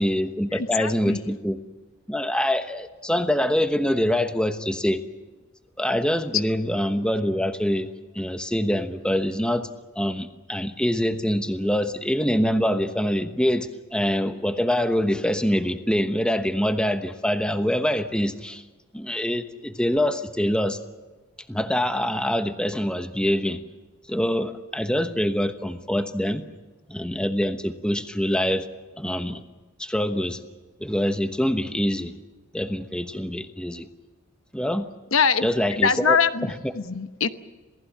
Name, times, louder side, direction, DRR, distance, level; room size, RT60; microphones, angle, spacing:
voice 1, 0.0-1.6 2.1-5.0 5.8-7.9 8.1-9.7 10.0-18.6 18.9-20.8 21.5-23.6 24.1-26.5 26.9-28.7 29.0-29.4 29.8-30.4 30.8-32.1 32.5-33.9 34.5-34.9 35.4-36.7, equal, 5° left, 8 dB, 1.1 m, -25 dB
voice 2, 0.5-1.2 35.1-35.5 35.8-36.5 36.8-37.3, left 6 dB, 65° left, 10 dB, 1.0 m, -22 dB
28.0 x 18.5 x 7.5 m, 1.2 s
head